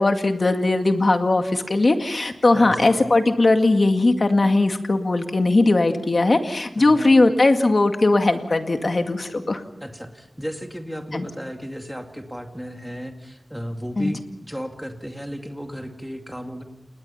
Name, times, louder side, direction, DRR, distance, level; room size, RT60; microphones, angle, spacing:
voice 1, 0.0-9.6 11.1-11.3 14.0-14.1, left 2 dB, 45° left, 6 dB, 2.1 m, -19 dB
voice 2, 2.5-3.0 6.8-7.2 9.8-16.6, equal, ahead, 4 dB, 2.3 m, -34 dB
29.0 x 20.5 x 5.7 m, 0.85 s
wide cardioid pair, 100°, 0 cm